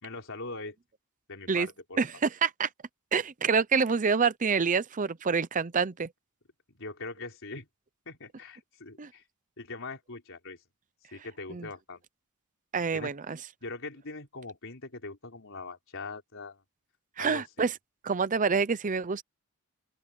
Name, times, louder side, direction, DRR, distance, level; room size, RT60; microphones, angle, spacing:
voice 1, 0.0-0.8 1.3-2.0 6.7-7.7 8.1-9.2 9.6-10.6 11.1-12.0 12.9-13.1 13.6-16.6 17.2-17.7, left 3 dB, 60° left, 4.5 m, -41 dB
voice 2, 2.0-2.7 3.1-6.1 9.0-9.1 11.5-11.7 12.7-13.4 17.2-17.7 18.0-19.2, right 5 dB, 35° right, 0.6 m, -27 dB
open air
head